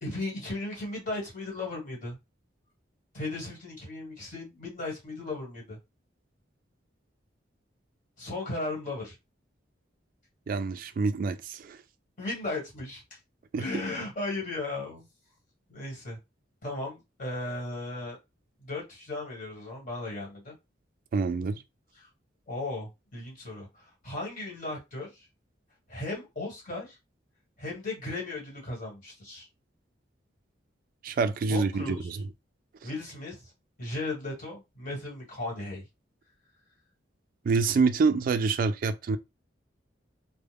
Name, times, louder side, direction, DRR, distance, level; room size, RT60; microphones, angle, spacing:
voice 1, 0.0-2.2 3.1-5.8 8.2-9.1 12.2-13.2 13.6-15.1 15.7-16.2 16.6-18.2 18.6-20.5 22.0-22.1 22.5-25.3 25.9-27.0 27.6-29.5 31.5-32.1 32.8-33.4 33.8-35.8, left 2 dB, 45° left, 1.5 m, -36 dB
voice 2, 10.5-11.8 13.5-13.6 21.1-21.6 31.0-32.3 37.4-39.2, right 4 dB, 50° right, 0.3 m, -26 dB
2.3 x 2.1 x 3.3 m
head